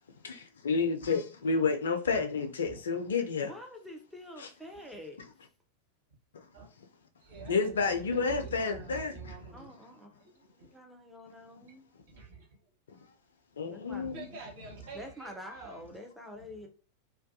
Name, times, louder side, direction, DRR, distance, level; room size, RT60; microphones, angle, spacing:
voice 1, 0.2-3.5 4.4-4.5 7.5-9.1 13.6-14.3, left 4 dB, 65° left, 0.4 m, -30 dB
voice 2, 3.4-5.2 9.5-11.8 13.7-14.1 14.9-16.7, equal, ahead, 0.5 m, -47 dB
voice 3, 7.2-10.0 10.2-10.7 12.1-12.5 13.9-16.0 16.3-16.7, right 4 dB, 50° right, 0.9 m, -47 dB
2.3 x 2.2 x 2.6 m
figure-of-eight pair, 90°, 0 cm